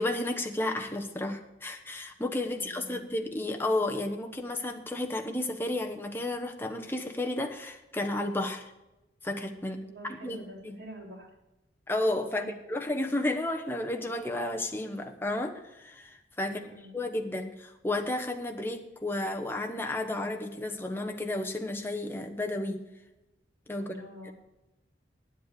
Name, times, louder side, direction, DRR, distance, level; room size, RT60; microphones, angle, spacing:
voice 1, 0.0-8.6 9.2-10.4 10.6-10.8 11.9-16.6 16.9-22.8 23.7-23.9 24.2-24.3, left 1 dB, 15° left, 3 dB, 1.0 m, -32 dB
voice 2, 2.5-3.0 9.8-11.3 12.4-12.5 16.4-17.0 23.8-24.3, right 1 dB, 65° right, -3 dB, 3.7 m, -46 dB
9.8 x 7.8 x 6.6 m, 0.95 s
head